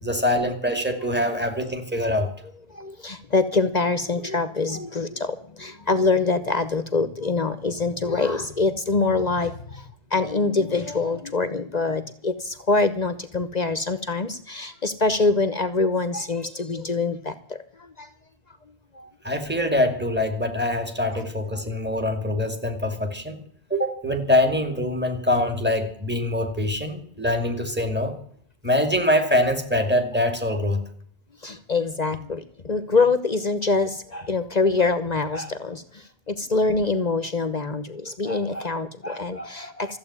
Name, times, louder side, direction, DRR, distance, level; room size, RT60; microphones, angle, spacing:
voice 1, 0.0-2.3 19.2-23.4 23.7-28.2 28.6-30.8, left 1 dB, 10° right, 2.3 m, -24 dB
voice 2, 2.7-18.1 18.9-19.1 21.1-21.3 21.5-21.6 31.4-40.0, left 3 dB, 45° left, 1.1 m, -25 dB
14.5 x 8.2 x 9.6 m
omnidirectional pair, 1.0 m